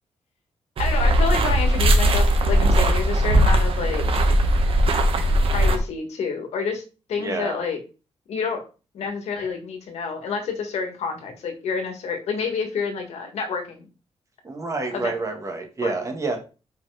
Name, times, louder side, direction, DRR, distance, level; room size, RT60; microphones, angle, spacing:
voice 1, 0.8-4.0 5.5-6.8 7.1-7.8 8.3-8.6 8.9-13.9 14.9-15.1 15.8-15.9, left 5 dB, 85° left, 5 dB, 1.7 m, -28 dB
sound 1, 0.8-5.8, equal, 60° right, 1.2 m, -19 dB
voice 2, 7.2-7.6 14.4-16.4, right 3 dB, 30° right, 3 dB, 1.7 m, -28 dB
5.3 x 4.4 x 4.9 m, 0.33 s
cardioid pair, 115°, 11 cm